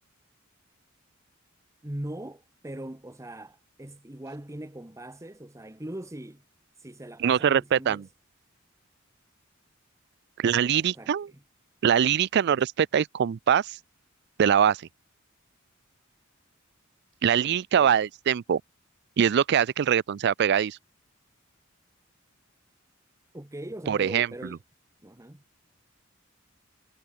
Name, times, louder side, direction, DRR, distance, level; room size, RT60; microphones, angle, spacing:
voice 1, 1.8-6.4 6.8-8.0 10.5-11.4 12.5-12.6 17.4-18.0 23.3-24.6 25.0-25.4, right 1 dB, 15° right, 1.1 m, -41 dB
voice 2, 7.2-8.0 10.4-11.3 11.8-13.8 14.4-14.8 17.2-18.6 19.2-20.8 23.9-24.3, right 8 dB, 55° right, 0.4 m, -23 dB
head